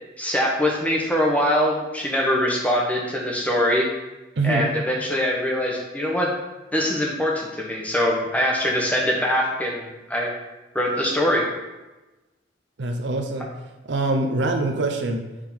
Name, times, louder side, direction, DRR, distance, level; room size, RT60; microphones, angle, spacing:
voice 1, 0.2-3.9 4.4-6.3 6.7-10.3 10.7-11.5, equal, 5° left, -2 dB, 0.8 m, -23 dB
voice 2, 4.4-4.7 12.8-13.5 13.9-15.2, right 2 dB, 60° right, 5 dB, 0.6 m, -24 dB
4.9 x 3.6 x 5.4 m, 1.1 s
head